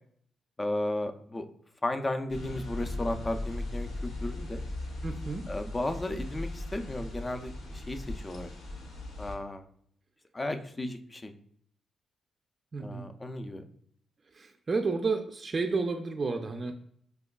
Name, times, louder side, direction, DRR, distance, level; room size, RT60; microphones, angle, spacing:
voice 1, 0.6-1.5 1.8-4.6 5.5-8.5 9.2-9.6 10.3-11.3 12.8-13.7, left 1 dB, 25° left, 7 dB, 0.4 m, -34 dB
sound 1, 2.3-9.4, left 2 dB, 80° left, 0.8 m, -38 dB
voice 2, 5.0-5.5 12.7-13.0 14.3-16.8, right 4 dB, 40° right, 4 dB, 0.4 m, -31 dB
4.8 x 2.3 x 2.3 m, 0.64 s
supercardioid pair, 55°, 0 cm